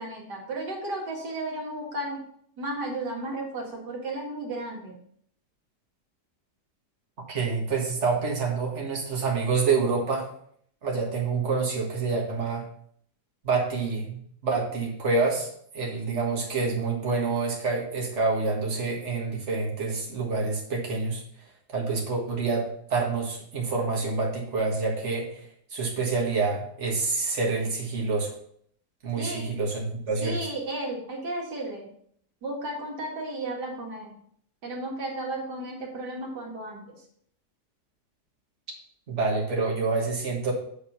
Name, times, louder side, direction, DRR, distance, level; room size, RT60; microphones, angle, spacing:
voice 1, 0.0-2.2 2.6-5.0 29.2-29.5 30.2-31.9 32.4-34.2 34.6-37.0, right 2 dB, 80° right, -2 dB, 2.5 m, -34 dB
voice 2, 7.3-10.3 10.8-12.6 13.4-15.5 15.7-21.2 21.7-25.4 25.7-28.3 29.0-30.4 39.1-40.5, right 4 dB, 45° right, -1 dB, 1.9 m, -27 dB
7.4 x 3.9 x 5.8 m, 0.66 s
omnidirectional pair, 1.8 m